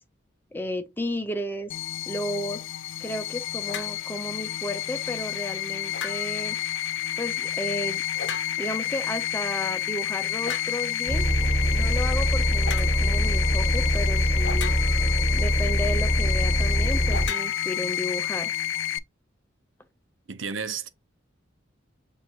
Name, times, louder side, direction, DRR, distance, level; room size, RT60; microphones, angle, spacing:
voice 1, 0.5-1.7 2.1-2.6 3.0-6.6 7.2-8.0 8.6-11.2 11.7-14.7 15.3-18.5, left 1 dB, 10° left, 0.6 m, -33 dB
sound 1, 1.7-19.0, left 11 dB, 85° left, 0.4 m, -30 dB
sound 2, 3.7-4.0 5.9-6.5 8.2-8.8 10.4-10.8 12.6-12.9 14.4-15.2 17.1-18.2, left 5 dB, 65° left, 0.8 m, -36 dB
Bus, 11.1-17.3, equal, 15° right, 2.3 m, -23 dB
voice 2, 20.3-20.9, right 6 dB, 90° right, 0.8 m, -32 dB
6.6 x 2.6 x 2.9 m
head